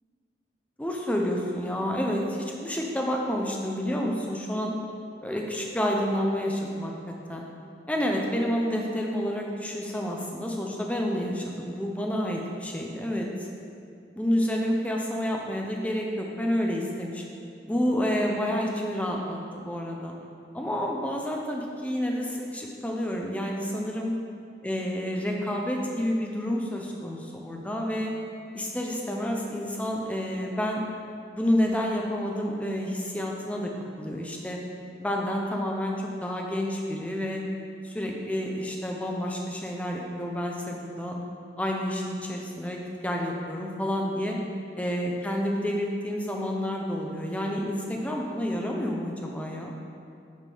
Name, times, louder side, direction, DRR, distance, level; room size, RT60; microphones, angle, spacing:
voice 1, 0.8-4.7 5.2-6.9 7.3-7.5 7.9-13.5 14.1-17.2 17.7-20.1 20.5-24.1 24.6-28.1 28.5-30.8 31.3-33.7 34.0-34.6 35.0-37.4 37.8-41.2 41.6-44.4 44.8-49.7, equal, 10° left, 0 dB, 0.6 m, -29 dB
7.3 x 3.6 x 5.4 m, 2.5 s
head